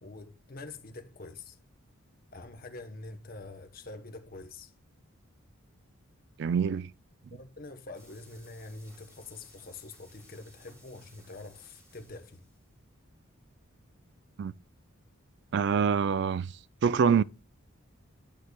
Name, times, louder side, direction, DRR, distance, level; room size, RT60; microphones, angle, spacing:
voice 1, 0.0-1.6 2.3-4.7 7.3-12.5, left 2 dB, 45° left, 0.9 m, -45 dB
voice 2, 6.4-6.9 14.4-14.5 15.5-16.5 16.8-17.2, right 6 dB, 55° right, 0.3 m, -25 dB
sound 1, 7.9-12.7, equal, 15° right, 2.9 m, -59 dB
10.5 x 4.8 x 2.2 m
head